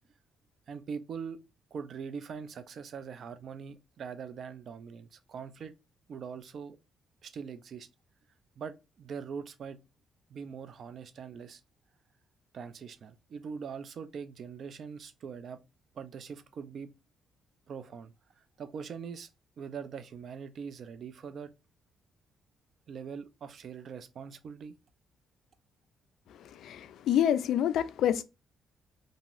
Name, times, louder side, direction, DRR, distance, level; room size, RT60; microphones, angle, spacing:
voice 1, 0.7-1.4 1.7-5.7 6.1-6.8 7.2-7.9 8.6-9.8 10.3-11.6 12.5-15.6 15.9-16.9 17.7-19.3 19.6-21.5 22.9-24.7, right 6 dB, 60° right, 0.4 m, -42 dB
voice 2, 26.3-28.2, left 10 dB, 75° left, 0.3 m, -28 dB
3.0 x 2.7 x 2.5 m
cardioid pair, 90°, 0 cm